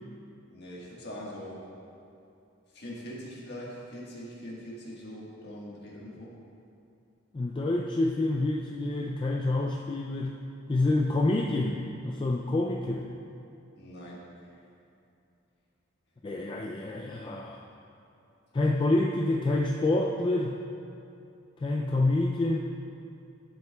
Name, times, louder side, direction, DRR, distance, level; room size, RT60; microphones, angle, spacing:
voice 1, 0.5-1.6 2.7-6.3 13.8-14.6, equal, 55° left, -5 dB, 1.5 m, -42 dB
voice 2, 7.3-10.4 10.7-13.1 16.2-17.6 18.5-20.6 21.6-22.6, left 2 dB, 25° left, -1 dB, 0.3 m, -27 dB
11.0 x 7.4 x 2.3 m, 2.7 s
head